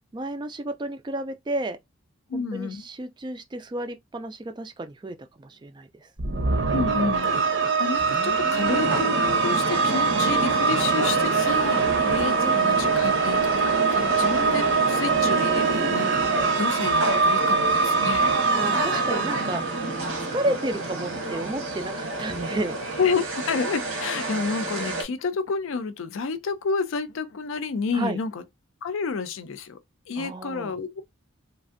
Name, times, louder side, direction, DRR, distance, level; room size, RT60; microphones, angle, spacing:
voice 1, 0.1-1.8 2.3-6.1 12.4-12.7 18.5-19.9 20.3-22.7 27.9-28.2 30.2-30.7, right 1 dB, 20° right, 0.3 m, -32 dB
voice 2, 2.3-2.8 6.7-18.3 23.0-28.4 28.8-29.8 30.1-31.0, left 5 dB, 75° left, 0.4 m, -30 dB
sound 1, 6.2-20.6, right 5 dB, 65° right, 0.7 m, -23 dB
sound 2, 8.6-25.0, right 2 dB, 85° right, 1.2 m, -30 dB
3.1 x 2.5 x 2.5 m
head